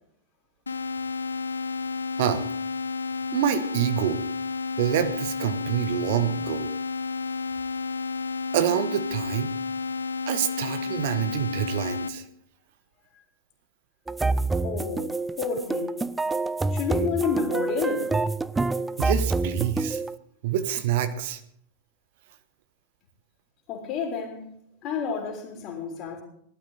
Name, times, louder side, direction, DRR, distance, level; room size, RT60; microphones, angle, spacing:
sound 1, 0.7-12.1, left 4 dB, 75° left, 1.0 m, -31 dB
voice 1, 3.3-4.2 4.8-6.7 8.5-9.5 10.3-12.2 19.0-20.0 20.4-21.4, right 11 dB, 50° right, 10 dB, 1.1 m, -26 dB
sound 2, 14.1-20.2, right 3 dB, 10° right, 0.5 m, -27 dB
voice 2, 14.6-15.1 15.4-16.0 16.7-18.2 23.7-24.5 24.8-26.2, left 6 dB, 40° left, -1 dB, 3.6 m, -30 dB
19.0 x 12.0 x 4.0 m, 0.70 s
figure-of-eight pair, 90°, 0 cm